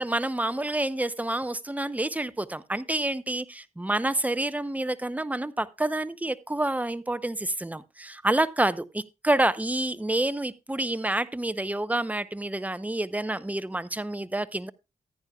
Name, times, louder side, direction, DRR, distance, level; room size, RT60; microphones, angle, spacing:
voice 1, 0.0-14.7, right 1 dB, 10° right, 0.6 m, -28 dB
14.5 x 9.7 x 2.3 m
cardioid pair, 60°, 16 cm